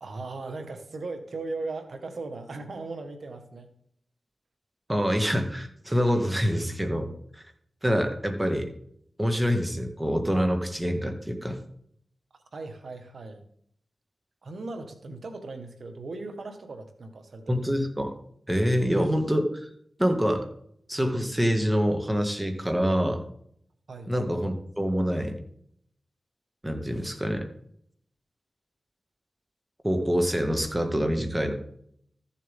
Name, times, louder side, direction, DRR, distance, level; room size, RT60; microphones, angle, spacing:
voice 1, 0.0-3.7 12.5-13.4 14.4-17.7 18.6-18.7 23.9-24.1, right 3 dB, 70° right, 6 dB, 1.6 m, -38 dB
voice 2, 4.9-7.1 7.8-8.7 9.2-11.6 17.5-18.1 18.5-19.7 20.0-20.5 20.9-23.2 24.1-25.4 26.6-27.5 29.8-31.5, equal, 15° right, 5 dB, 2.0 m, -26 dB
14.0 x 7.3 x 3.7 m, 0.67 s
cardioid pair, 45°, 0 cm